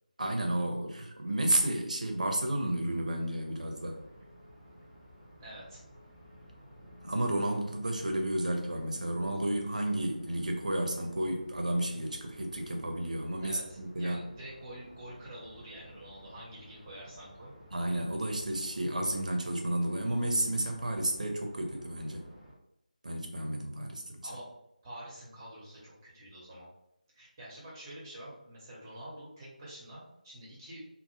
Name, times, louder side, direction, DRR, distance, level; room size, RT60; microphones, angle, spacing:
voice 1, 0.2-4.0 7.0-14.2 17.7-22.2 23.0-24.3, right 1 dB, 60° right, 2 dB, 0.5 m, -32 dB
sound 1, 3.4-22.5, equal, 20° left, 0.5 m, -54 dB
voice 2, 5.4-5.8 13.4-17.5 24.2-24.5 24.8-26.7 27.1-30.8, right 1 dB, 15° right, -6 dB, 0.7 m, -47 dB
2.1 x 2.1 x 2.9 m, 0.84 s
figure-of-eight pair, 160°, 5 cm